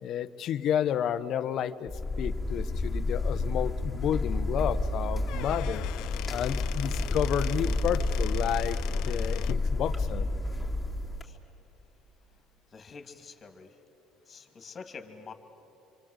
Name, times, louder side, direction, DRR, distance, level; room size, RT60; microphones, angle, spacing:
voice 1, 0.0-1.9 2.2-8.8 9.1-10.3, left 9 dB, 55° left, 13 dB, 1.0 m, -31 dB
sound 1, 1.9-11.2, left 2 dB, 10° left, 3.6 m, -30 dB
Squeak / Wood, 5.1-9.7, left 16 dB, 75° left, 0.6 m, -42 dB
voice 2, 12.7-13.8 14.3-15.3, left 5 dB, 35° left, 6 dB, 2.7 m, -46 dB
26.5 x 25.0 x 8.2 m, 3.0 s
cardioid pair, 105°, 0 cm